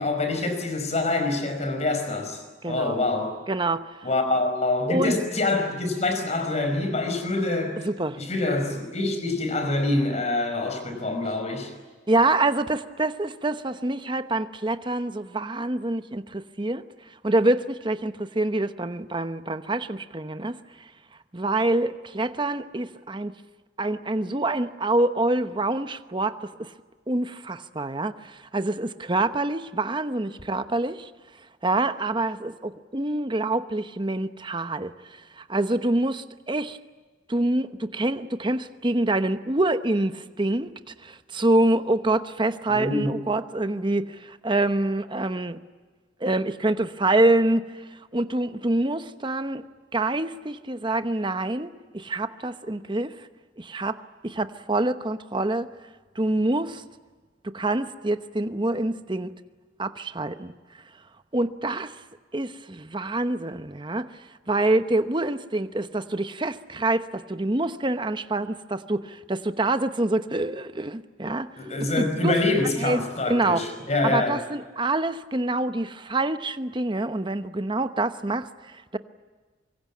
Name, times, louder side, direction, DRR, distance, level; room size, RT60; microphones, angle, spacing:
voice 1, 0.0-3.4 4.0-7.9 8.2-11.7 42.7-43.1 71.6-74.4, left 2 dB, 35° left, 6 dB, 5.2 m, -26 dB
voice 2, 2.6-3.0 3.5-3.9 4.9-5.2 7.8-8.2 12.1-16.8 17.2-20.6 21.3-23.3 23.8-26.7 27.1-31.1 31.6-36.8 37.3-40.7 41.0-45.6 46.2-47.6 48.1-49.6 49.9-53.3 53.6-54.0 54.2-55.7 56.2-56.8 57.4-59.3 59.8-60.5 61.3-61.9 62.3-64.1 64.5-71.5 72.0-72.4 72.8-73.0 73.3-73.6 74.0-79.0, right 2 dB, 25° right, 10 dB, 0.9 m, -26 dB
25.5 x 23.5 x 8.5 m, 1.4 s
head